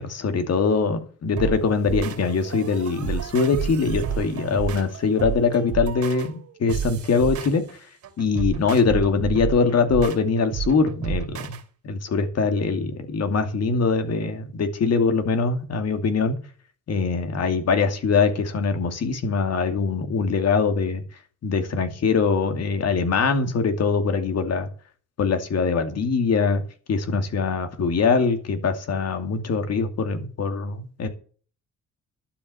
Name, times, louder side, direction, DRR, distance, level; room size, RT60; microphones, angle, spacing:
voice 1, 0.0-7.6 8.2-11.6 11.8-16.4 16.9-21.0 21.4-24.7 25.2-26.6 26.9-31.1, left 5 dB, 55° left, 7 dB, 2.5 m, -23 dB
sound 1, 1.4-11.6, right 8 dB, 75° right, 2.6 m, -31 dB
11.5 x 8.2 x 7.0 m, 0.41 s
cardioid pair, 90°, 30 cm